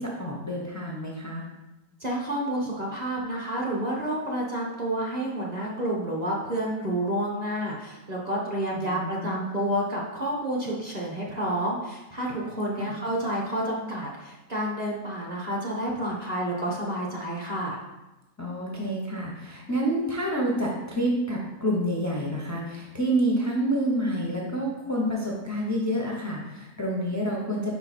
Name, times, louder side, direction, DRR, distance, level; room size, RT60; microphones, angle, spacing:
voice 1, 0.0-1.4 8.7-9.6 12.8-13.0 18.4-27.7, right 1 dB, 20° left, -2 dB, 0.5 m, -28 dB
voice 2, 2.0-17.8, right 1 dB, 35° right, -3 dB, 0.9 m, -29 dB
4.9 x 4.8 x 4.1 m, 1.0 s
omnidirectional pair, 1.6 m